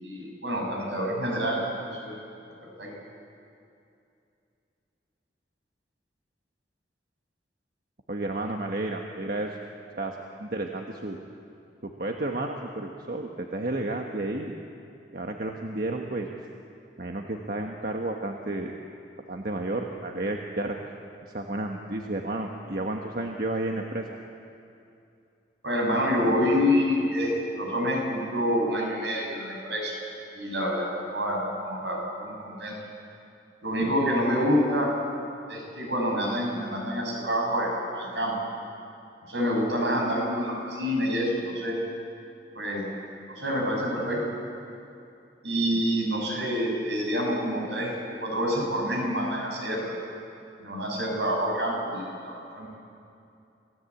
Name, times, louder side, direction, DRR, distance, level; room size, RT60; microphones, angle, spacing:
voice 1, 0.0-1.6 1.9-2.1 2.6-2.9 25.6-29.9 30.3-32.7 33.6-34.9 35.5-38.4 39.3-41.8 42.6-42.9 43.3-44.2 45.4-48.0 48.2-50.0 50.6-52.7, equal, 80° right, 0 dB, 7.1 m, -27 dB
voice 2, 8.1-9.6 10.0-11.2 11.8-14.5 15.1-16.3 17.0-18.7 19.3-20.8 21.3-24.2 45.7-45.8, right 2 dB, 55° right, 2 dB, 1.4 m, -32 dB
27.5 x 17.5 x 8.5 m, 2.6 s
head